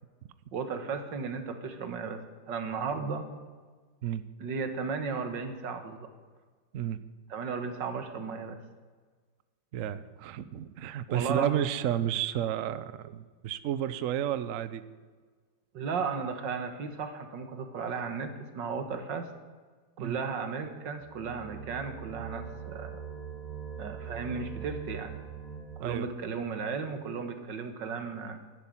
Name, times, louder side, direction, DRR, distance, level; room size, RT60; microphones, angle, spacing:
voice 1, 0.5-3.3 4.4-6.1 7.3-8.6 11.1-11.7 15.7-19.3 20.0-22.9 23.8-25.2 25.8-28.4, right 5 dB, 60° right, 8 dB, 2.0 m, -35 dB
voice 2, 9.7-14.8 20.0-20.2 25.8-26.1, right 11 dB, 85° right, 14 dB, 0.7 m, -31 dB
sound 1, 21.0-26.1, right 7 dB, 20° left, 3.6 m, -42 dB
11.5 x 11.5 x 9.8 m, 1.5 s
omnidirectional pair, 2.3 m